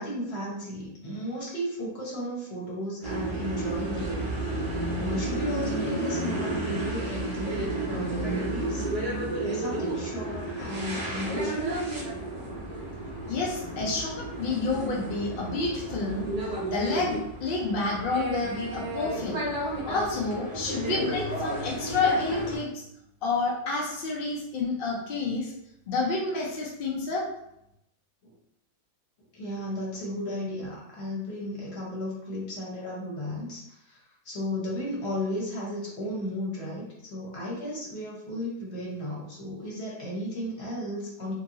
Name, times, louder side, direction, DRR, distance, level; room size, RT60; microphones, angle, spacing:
voice 1, 0.0-4.3 5.0-8.8 9.4-11.8 28.2-28.3 29.3-41.3, equal, 45° left, -5 dB, 1.1 m, -34 dB
sound 1, 3.0-22.6, right 1 dB, 35° right, 0.6 m, -32 dB
voice 2, 13.3-16.2 16.7-19.4 19.9-22.8 23.2-25.5 25.9-27.3, left 3 dB, 70° left, -3 dB, 0.5 m, -29 dB
2.7 x 2.6 x 2.6 m, 0.78 s
omnidirectional pair, 1.7 m